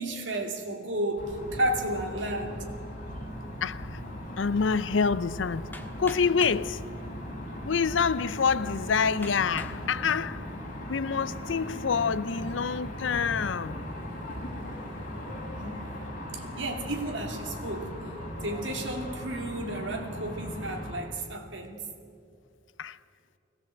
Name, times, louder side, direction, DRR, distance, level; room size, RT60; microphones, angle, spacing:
voice 1, 0.0-2.7 15.6-15.9 16.3-18.0 18.4-21.9, right 1 dB, 70° right, 2.7 m, -32 dB
sound 1, 1.2-21.0, equal, 45° left, 5.1 m, -38 dB
voice 2, 3.6-4.0 4.4-6.8 7.6-10.5 10.9-13.8 22.8-23.0, left 5 dB, 80° left, 0.6 m, -27 dB
Hammer, 5.7-6.7 7.6-7.7 8.3-8.4 9.2-9.8 10.4-10.8, left 2 dB, 10° left, 1.5 m, -43 dB
21.5 x 18.5 x 7.9 m
head